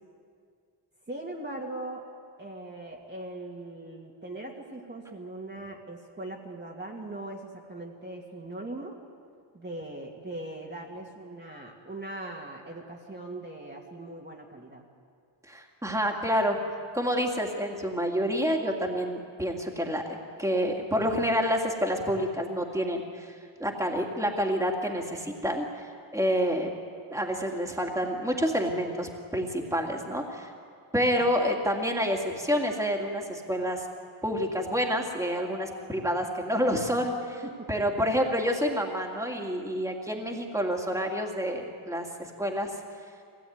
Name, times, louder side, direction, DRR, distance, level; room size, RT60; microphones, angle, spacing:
voice 1, 1.1-2.0 2.4-9.0 9.5-14.8 37.4-37.7 38.0-38.1, right 2 dB, 20° right, -2 dB, 2.1 m, -40 dB
voice 2, 15.5-16.6 16.9-20.0 20.4-23.3 23.6-26.7 27.1-30.5 30.9-33.8 34.2-37.4 37.7-42.7, equal, 5° right, 1 dB, 2.4 m, -28 dB
23.0 x 17.5 x 9.4 m, 2.2 s
wide cardioid pair, 145°, 48 cm